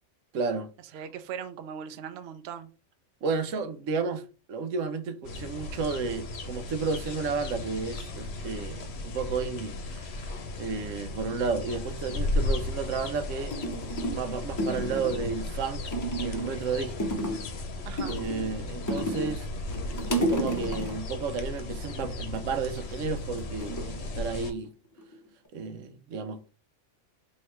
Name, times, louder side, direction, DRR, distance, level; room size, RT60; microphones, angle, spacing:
voice 1, 0.3-1.0 3.2-4.2 4.5-10.3 10.6-13.6 14.1-17.1 18.1-19.5 20.2-24.7 25.5-26.5, right 5 dB, 85° right, 1.0 m, -32 dB
voice 2, 0.9-2.7 17.8-18.2, right 8 dB, 65° right, 0.8 m, -39 dB
sound 1, 5.2-24.5, left 2 dB, 65° left, 0.9 m, -35 dB
sound 2, 13.5-14.3 14.6-15.3 15.9-16.6 17.0-17.5 18.0-19.4 19.7-21.1 22.7-23.1 23.6-24.7 25.0-25.5, right 1 dB, 25° left, 0.4 m, -32 dB
3.2 x 2.8 x 4.3 m
omnidirectional pair, 1.3 m